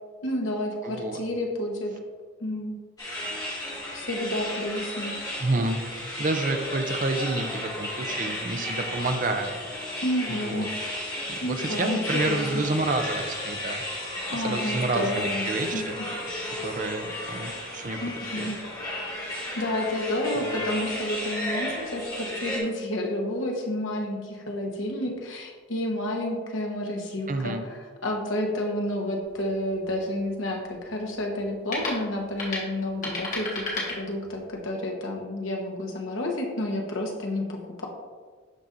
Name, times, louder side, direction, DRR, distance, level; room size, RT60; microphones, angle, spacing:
voice 1, 0.2-1.9 2.4-2.8 3.9-5.1 10.0-10.7 11.4-12.4 14.3-15.5 15.7-15.8 18.0-18.6 19.6-37.9, left 1 dB, 75° left, 1 dB, 1.1 m, -30 dB
voice 2, 0.8-1.2 5.4-9.5 9.9-10.0 10.3-10.7 11.4-13.8 14.3-16.0 16.6-18.0 18.4-18.5 20.4-20.6 27.3-27.6, right 2 dB, 40° right, 6 dB, 0.5 m, -29 dB
sound 1, 3.0-22.6, left 1 dB, 20° left, 1.5 m, -33 dB
sound 2, 29.2-34.6, left 2 dB, 40° left, 1.6 m, -36 dB
11.5 x 4.1 x 2.6 m, 1.5 s
head